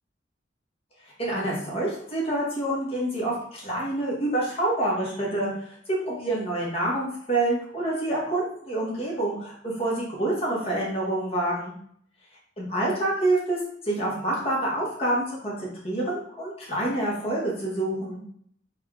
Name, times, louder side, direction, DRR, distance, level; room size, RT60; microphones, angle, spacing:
voice 1, 1.2-5.8 6.1-11.7 12.6-13.6 13.8-18.2, right 1 dB, 35° left, -5 dB, 1.1 m, -27 dB
3.5 x 2.3 x 3.5 m, 0.64 s
head